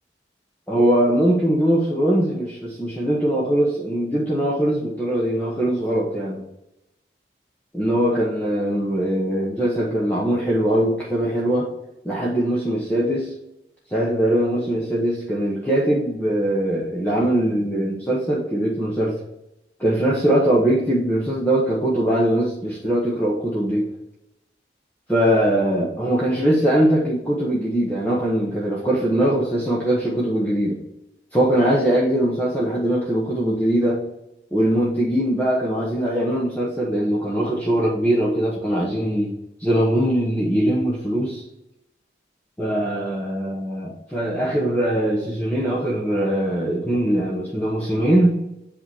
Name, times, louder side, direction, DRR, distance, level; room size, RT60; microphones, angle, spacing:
voice 1, 0.7-6.4 7.7-11.7 12.0-13.3 13.9-19.2 19.8-23.9 25.1-30.8 31.3-34.0 34.5-39.3 39.6-41.4 42.6-48.4, right 1 dB, 10° left, -5 dB, 1.0 m, -21 dB
7.9 x 2.8 x 6.1 m, 0.89 s
head